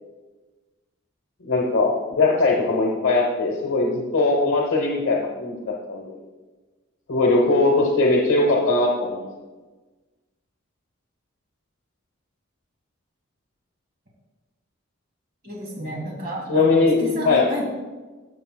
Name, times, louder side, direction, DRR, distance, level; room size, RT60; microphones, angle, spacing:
voice 1, 1.5-6.2 7.1-9.3 16.5-17.6, left 3 dB, 75° left, -2 dB, 1.0 m, -20 dB
voice 2, 15.4-17.6, equal, 45° right, -3 dB, 2.3 m, -31 dB
13.0 x 6.4 x 2.2 m, 1.3 s
head